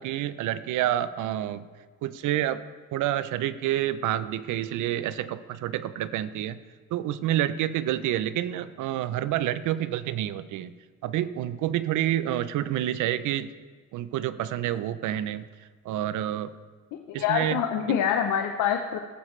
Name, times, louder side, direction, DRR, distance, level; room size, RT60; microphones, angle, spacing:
voice 1, 0.0-1.7 2.0-2.6 2.9-6.6 6.9-10.7 11.0-13.5 13.9-15.4 15.9-16.5 17.1-17.6, right 12 dB, 80° right, 14 dB, 0.6 m, -28 dB
voice 2, 17.2-19.0, left 8 dB, 85° left, 4 dB, 0.8 m, -25 dB
17.0 x 7.3 x 3.2 m, 1.5 s
cardioid pair, 90°, 30 cm